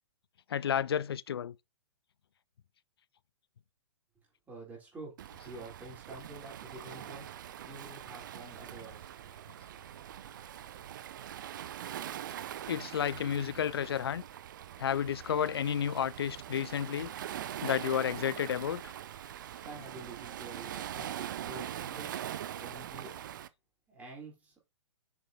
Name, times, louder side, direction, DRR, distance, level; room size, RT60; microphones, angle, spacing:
voice 1, 0.5-1.5 12.7-14.2 14.8-17.1 17.6-18.8, left 8 dB, 55° left, 0.4 m, -31 dB
voice 2, 4.5-5.2 5.4-9.1 19.6-22.1 22.6-23.2 23.9-24.6, right 2 dB, 10° right, 3.6 m, -48 dB
Waves surf, 5.2-23.5, right 11 dB, 40° right, 0.5 m, -43 dB
Sliding door, 7.3-12.4, right 4 dB, 65° right, 3.0 m, -60 dB
6.8 x 6.5 x 2.7 m
figure-of-eight pair, 120°, 15 cm